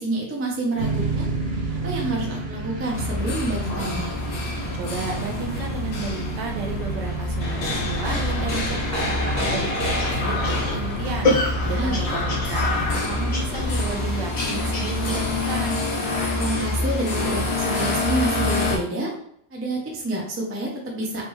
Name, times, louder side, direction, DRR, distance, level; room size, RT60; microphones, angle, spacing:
voice 1, 0.0-4.1 11.6-12.0 16.3-19.1 19.5-21.3, right 1 dB, 20° right, -1 dB, 0.3 m, -28 dB
sound 1, 0.8-15.5, right 3 dB, 45° right, 1.0 m, -32 dB
sound 2, 2.9-18.8, left 2 dB, 65° left, 1.3 m, -26 dB
voice 2, 4.7-15.8, right 4 dB, 85° right, 3 dB, 1.4 m, -33 dB
sound 3, 9.5-15.5, left 2 dB, 40° left, 0.5 m, -28 dB
3.4 x 3.3 x 3.1 m, 0.69 s
omnidirectional pair, 1.8 m